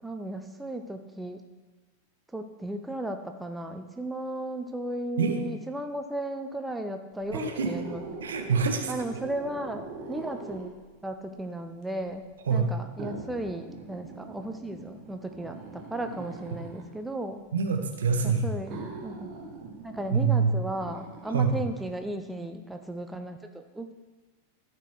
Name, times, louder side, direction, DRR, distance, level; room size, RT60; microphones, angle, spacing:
voice 1, 0.0-1.4 2.3-8.0 8.9-10.8 11.0-17.4 18.2-18.8 19.0-19.3 19.8-23.9, right 1 dB, 5° right, 6 dB, 0.5 m, -35 dB
sound 1, 7.2-10.9 11.8-11.9 13.0-16.9 17.9-18.0 18.7-21.3 21.8-21.9, right 3 dB, 40° right, 1.4 m, -41 dB
voice 2, 7.3-7.7 8.2-8.9 12.5-12.7 17.5-18.5 20.1-20.5 21.3-21.5, right 6 dB, 65° right, 5 dB, 1.0 m, -25 dB
12.5 x 4.5 x 4.7 m, 1.3 s
figure-of-eight pair, 90°, 0 cm